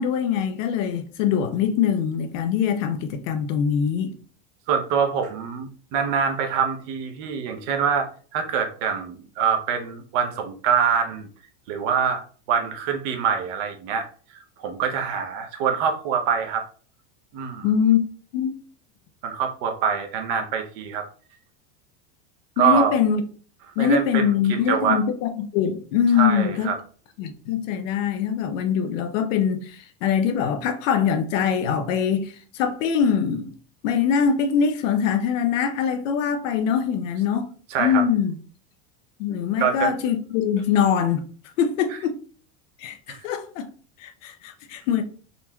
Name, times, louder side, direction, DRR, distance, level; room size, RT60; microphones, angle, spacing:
voice 1, 0.0-4.1 17.6-18.0 18.3-18.6 22.6-23.2 23.8-26.7 27.2-33.5 33.8-37.5 37.8-38.3 39.2-41.2 41.6-42.1 42.8-43.7 44.0-45.0, left 7 dB, 85° left, 0.7 m, -23 dB
voice 2, 4.7-8.1 8.3-11.3 11.7-12.2 12.5-14.1 14.6-16.7 17.3-17.7 19.2-21.0 22.6-22.9 23.8-24.2 24.5-25.0 26.2-26.8 37.7-38.0 39.6-39.9 43.1-43.2, right 7 dB, 45° right, 0.6 m, -24 dB
3.9 x 3.0 x 2.2 m
supercardioid pair, 165°, 38 cm